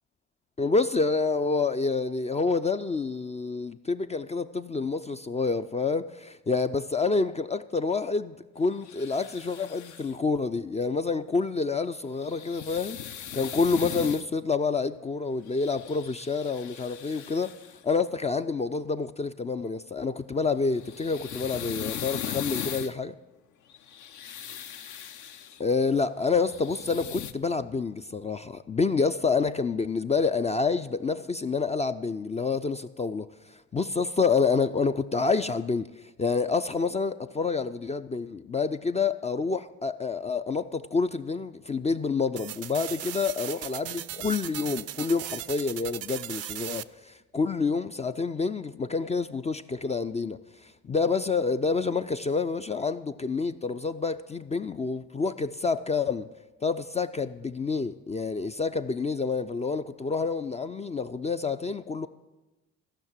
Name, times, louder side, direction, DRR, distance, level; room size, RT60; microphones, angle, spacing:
voice 1, 0.6-13.0 13.3-17.5 17.8-23.2 25.6-33.3 33.7-35.9 36.2-56.3 56.6-62.1, left 4 dB, 20° left, 0.3 m, -28 dB
sound 1, 8.8-10.1 12.1-14.3 15.5-17.8 20.5-22.9 23.7-25.6 26.2-27.3, left 9 dB, 60° left, 0.7 m, -39 dB
sound 2, 42.4-46.8, right 12 dB, 50° right, 0.4 m, -37 dB
14.0 x 5.8 x 7.3 m
supercardioid pair, 65°, 33 cm